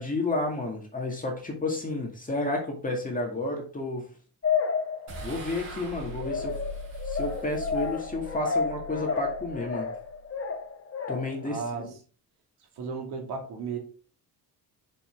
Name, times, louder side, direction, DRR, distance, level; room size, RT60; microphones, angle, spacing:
voice 1, 0.0-4.1 5.2-6.6 7.0-9.9 11.1-11.9, left 2 dB, 20° left, 1 dB, 2.1 m, -31 dB
sound 1, 4.4-5.5 6.2-11.5, left 5 dB, 35° left, 1.3 m, -31 dB
sound 2, 5.1-10.4, equal, 45° right, 3.7 m, -41 dB
voice 2, 11.4-11.9 12.8-13.8, right 5 dB, 85° right, 2 dB, 2.6 m, -34 dB
6.7 x 5.9 x 3.6 m, 0.39 s
cardioid pair, 100°, 38 cm